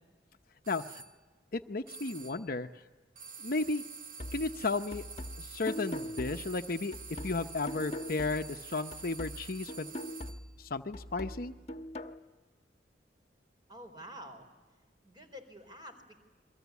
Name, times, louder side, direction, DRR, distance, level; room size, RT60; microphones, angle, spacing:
sound 1, 0.6-1.2 1.9-2.5 3.2-10.5, right 5 dB, 50° right, 0.8 m, -48 dB
voice 1, 0.7-1.0 1.5-2.7 3.4-3.8 4.3-5.0 5.4-6.9 7.2-9.9 10.6-11.5, left 3 dB, 55° left, 8 dB, 0.9 m, -34 dB
sound 2, 4.2-8.6 8.9-12.2, left 1 dB, 40° left, 1.3 m, -42 dB
voice 2, 13.7-14.5 15.0-16.1, equal, 25° right, 6 dB, 4.4 m, -48 dB
29.5 x 22.5 x 8.3 m, 1.3 s
head